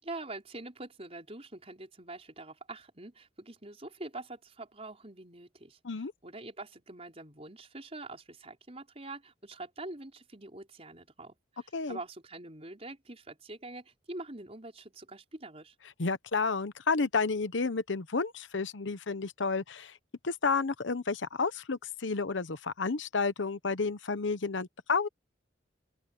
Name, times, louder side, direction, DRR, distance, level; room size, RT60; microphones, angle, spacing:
voice 1, 0.0-15.8, right 2 dB, 35° right, 5.2 m, -45 dB
voice 2, 16.0-20.0 20.2-25.1, left 4 dB, 85° left, 0.9 m, -31 dB
open air
head